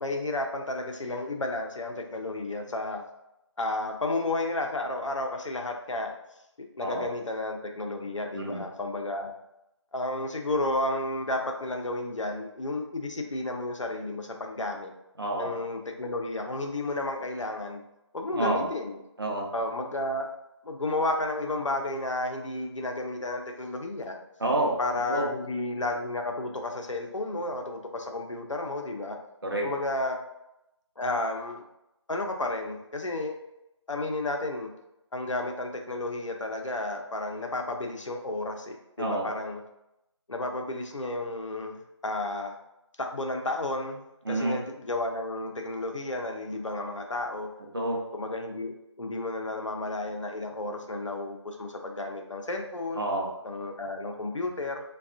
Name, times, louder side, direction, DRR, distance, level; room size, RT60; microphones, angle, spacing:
voice 1, 0.0-3.0 3.6-6.1 6.6-9.3 9.9-14.9 15.4-17.8 18.1-19.0 19.5-20.3 20.6-24.2 24.8-29.2 29.6-30.2 31.0-31.6 32.1-33.4 33.9-34.7 35.1-39.6 40.3-42.5 43.0-47.5 48.1-53.0 53.4-54.8, left 2 dB, 85° left, 2 dB, 0.6 m, -32 dB
voice 2, 15.2-15.5 18.3-18.7 19.2-19.5 24.4-24.8 25.1-25.3 29.4-29.7 39.0-39.3 44.2-44.6 47.7-48.0 53.0-53.3, right 1 dB, 50° right, -1 dB, 0.7 m, -28 dB
3.4 x 2.3 x 2.4 m, 0.87 s
figure-of-eight pair, 170°, 15 cm